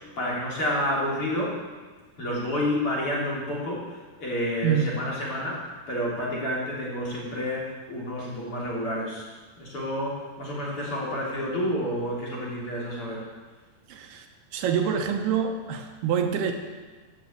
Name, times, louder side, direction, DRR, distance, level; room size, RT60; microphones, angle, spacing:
voice 1, 0.2-1.6 2.2-9.3 9.6-13.2, left 1 dB, 35° left, -5 dB, 4.0 m, -29 dB
voice 2, 4.6-5.0 13.9-14.3 14.5-16.5, right 7 dB, 80° right, 4 dB, 3.1 m, -26 dB
15.5 x 8.3 x 8.2 m, 1.3 s
omnidirectional pair, 4.7 m